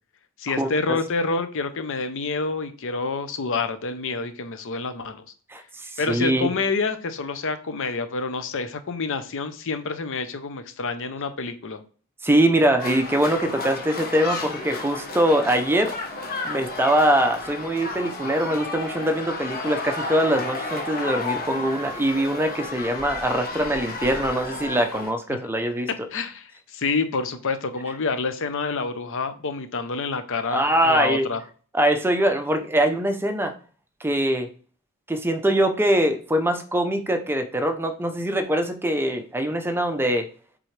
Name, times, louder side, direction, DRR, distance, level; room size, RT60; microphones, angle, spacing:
voice 1, 0.4-5.2 6.0-11.8 26.1-31.4, left 4 dB, 60° left, 10 dB, 0.7 m, -28 dB
voice 2, 5.5-6.5 12.2-15.9 16.4-25.9 30.5-31.3 31.7-33.5 34.0-34.5 35.1-40.3, right 1 dB, 10° right, 6 dB, 0.6 m, -23 dB
sound 1, 12.8-25.1, left 2 dB, 45° left, 1.1 m, -32 dB
7.6 x 3.8 x 3.2 m, 0.42 s
head